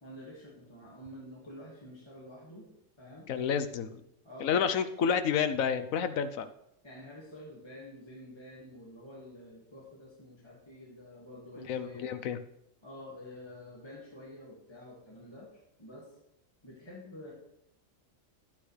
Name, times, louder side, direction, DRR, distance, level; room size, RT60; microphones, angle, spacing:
voice 1, 0.0-2.7 3.0-3.3 4.2-4.8 6.8-12.1 12.8-15.5 15.8-16.1 16.6-17.3, left 1 dB, 20° left, -5 dB, 1.9 m, -48 dB
voice 2, 3.3-4.0 4.4-6.5 11.7-12.4, left 7 dB, 80° left, 11 dB, 1.1 m, -29 dB
12.0 x 8.9 x 3.3 m, 0.80 s
omnidirectional pair, 1.4 m